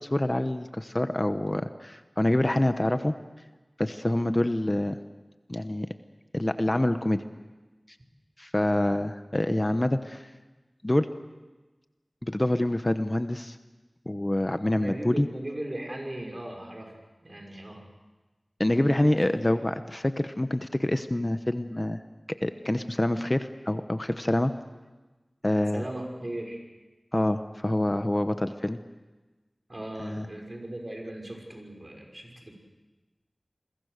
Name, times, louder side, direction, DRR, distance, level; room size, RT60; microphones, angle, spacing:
voice 1, 0.0-3.1 3.8-5.0 5.5-5.9 6.3-7.2 8.4-10.3 10.8-11.1 12.2-13.6 14.1-15.3 18.6-22.0 22.4-24.5 25.4-25.8 27.1-28.8 30.0-30.3, left 1 dB, 30° left, 9 dB, 1.0 m, -26 dB
voice 2, 14.8-16.9 17.2-17.9 25.7-26.6 29.7-32.5, right 1 dB, 45° right, 1 dB, 5.9 m, -38 dB
28.5 x 22.5 x 6.7 m, 1.2 s
wide cardioid pair, 45°, 0 cm